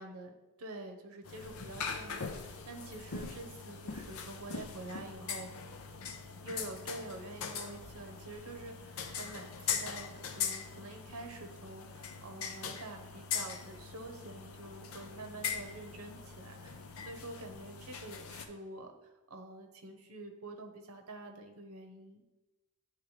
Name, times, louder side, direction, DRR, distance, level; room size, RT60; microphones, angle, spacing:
voice 1, 0.0-5.5 6.4-18.9 19.3-22.2, right 2 dB, 85° right, 4 dB, 0.8 m, -47 dB
sound 1, 1.2-18.4, left 6 dB, 90° left, 0.6 m, -41 dB
9.4 x 3.5 x 3.2 m, 1.1 s
head